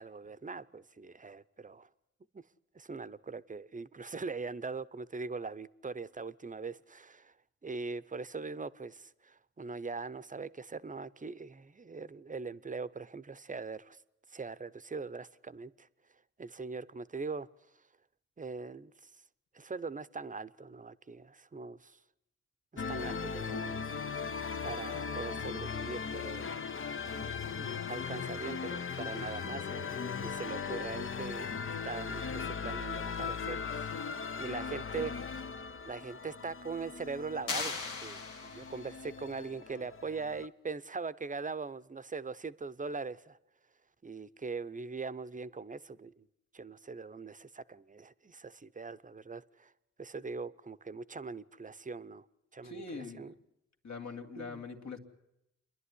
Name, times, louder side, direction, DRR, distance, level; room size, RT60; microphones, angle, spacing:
voice 1, 0.0-1.9 2.3-2.4 2.7-7.3 7.6-14.0 14.3-15.9 16.4-17.5 18.4-18.9 19.5-22.0 22.7-23.9 24.6-26.5 27.0-31.6 31.8-35.4 35.8-37.8 38.0-43.4 44.0-46.2 46.5-49.7 50.0-52.2 52.5-53.3 54.4-54.6, right 4 dB, 25° right, 0.8 m, -41 dB
sound 1, 22.8-40.5, left 6 dB, 40° left, 0.8 m, -38 dB
sound 2, 37.5-39.0, left 4 dB, 85° left, 2.0 m, -38 dB
voice 2, 52.6-53.3 53.8-55.0, left 4 dB, 60° left, 2.3 m, -43 dB
28.0 x 11.0 x 9.9 m
cardioid pair, 50°, 31 cm